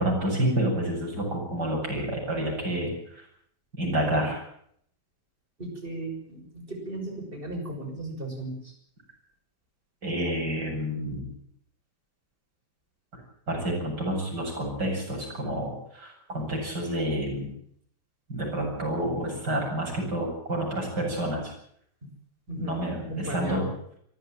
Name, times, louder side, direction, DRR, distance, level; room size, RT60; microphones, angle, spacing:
voice 1, 0.0-3.3 3.7-4.4 10.0-11.3 13.5-17.5 18.3-21.5 22.6-23.7, right 1 dB, 80° right, 0 dB, 8.8 m, -29 dB
voice 2, 5.6-8.7 22.5-23.7, right 1 dB, 30° right, 3 dB, 6.5 m, -36 dB
23.5 x 14.5 x 9.2 m, 0.68 s
omnidirectional pair, 1.8 m